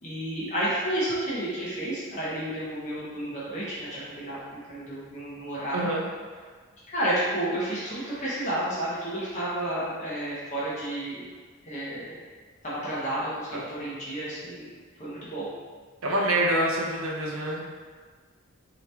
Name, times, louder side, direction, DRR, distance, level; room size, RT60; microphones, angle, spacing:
voice 1, 0.0-4.4 4.7-5.9 6.9-11.2 11.6-12.2 12.6-14.7 15.0-15.5, right 1 dB, 35° left, -9 dB, 0.8 m, -31 dB
voice 2, 5.7-6.1 13.5-13.6 16.0-17.7, right 1 dB, 75° right, -2 dB, 0.8 m, -26 dB
3.9 x 2.9 x 3.3 m, 1.5 s
head